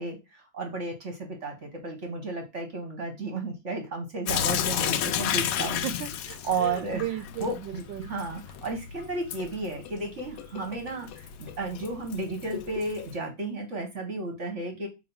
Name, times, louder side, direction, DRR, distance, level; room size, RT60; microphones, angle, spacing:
voice 1, 0.0-5.8 6.4-7.0 7.4-14.9, right 3 dB, 45° right, 1.2 m, -33 dB
Sink (filling or washing) / Drip, 4.3-13.2, left 9 dB, 80° left, 0.8 m, -33 dB
voice 2, 5.8-8.2, right 13 dB, 80° right, 1.2 m, -36 dB
5.6 x 3.4 x 5.4 m
omnidirectional pair, 2.1 m